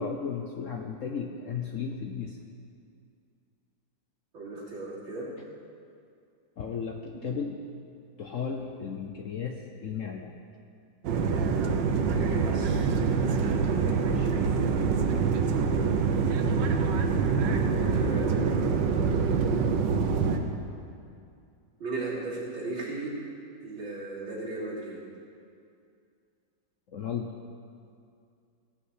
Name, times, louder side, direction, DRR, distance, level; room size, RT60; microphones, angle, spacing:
voice 1, 0.0-2.4 6.6-7.6 8.2-10.3 13.7-14.3 26.9-27.3, left 6 dB, 60° left, 3 dB, 0.8 m, -35 dB
voice 2, 4.3-5.3 12.0-12.8 17.6-18.6 21.8-23.1 23.6-25.0, right 2 dB, 90° right, -7 dB, 3.9 m, -36 dB
sound 1, 11.0-20.4, right 5 dB, 70° right, 1.5 m, -25 dB
17.0 x 6.0 x 8.1 m, 2.4 s
omnidirectional pair, 2.1 m